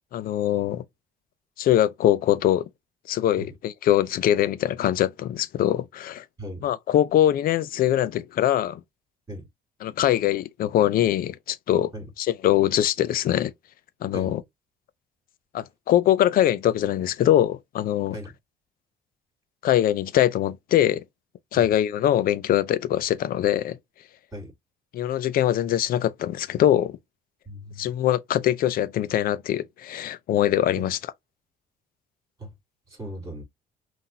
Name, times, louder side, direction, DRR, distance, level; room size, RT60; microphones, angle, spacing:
voice 1, 0.1-0.8 1.6-2.6 3.1-6.2 6.6-8.8 9.8-11.9 12.2-13.5 14.0-14.4 15.5-18.2 19.6-21.0 21.5-23.8 24.9-27.0 27.8-31.0, left 12 dB, 60° left, 0.5 m, -22 dB
voice 2, 27.5-27.9 30.8-30.9 32.4-32.5 32.9-33.4, equal, 20° right, 3.6 m, -38 dB
5.7 x 2.6 x 2.7 m
cardioid pair, 110°, 17 cm